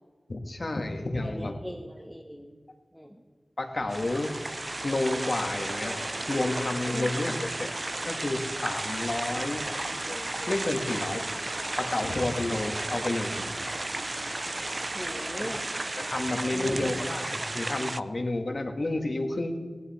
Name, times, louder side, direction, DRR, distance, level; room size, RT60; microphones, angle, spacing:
voice 1, 0.3-1.5 3.6-7.7 8.0-9.6 10.1-11.4 11.8-13.4 15.4-15.5 16.0-19.6, left 2 dB, 55° left, 5 dB, 1.8 m, -31 dB
voice 2, 1.2-2.6 2.9-3.3 6.9-7.1 14.9-15.6 16.5-16.9, equal, ahead, 1 dB, 1.3 m, -39 dB
sound 1, 3.7-15.7, left 2 dB, 40° left, 0.9 m, -44 dB
sound 2, 3.9-18.0, right 2 dB, 45° right, 0.4 m, -34 dB
18.0 x 12.5 x 4.3 m, 1.4 s
wide cardioid pair, 50°, 0 cm